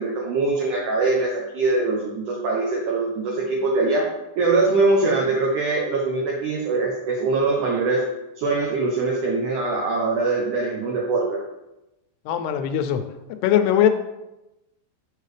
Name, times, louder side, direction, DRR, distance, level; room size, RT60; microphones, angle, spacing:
voice 1, 0.0-4.1 4.4-8.0 8.4-11.4, right 3 dB, 80° right, -2 dB, 1.8 m, -22 dB
voice 2, 12.3-13.0 13.4-13.9, left 10 dB, 85° left, 8 dB, 2.6 m, -20 dB
6.8 x 6.5 x 3.3 m, 0.95 s
omnidirectional pair, 4.8 m